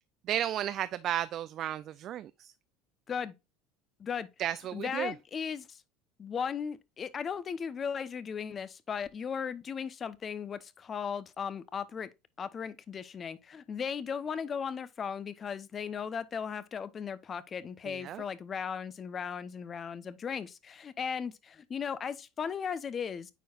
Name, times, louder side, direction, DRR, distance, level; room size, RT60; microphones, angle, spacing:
voice 1, 0.3-2.5 4.4-5.1 17.9-18.2, right 11 dB, 50° right, 0.4 m, -33 dB
voice 2, 4.7-5.8 6.2-12.1 12.4-23.3, left 7 dB, 35° left, 0.8 m, -37 dB
9.1 x 4.7 x 2.4 m
supercardioid pair, 100°, 0 cm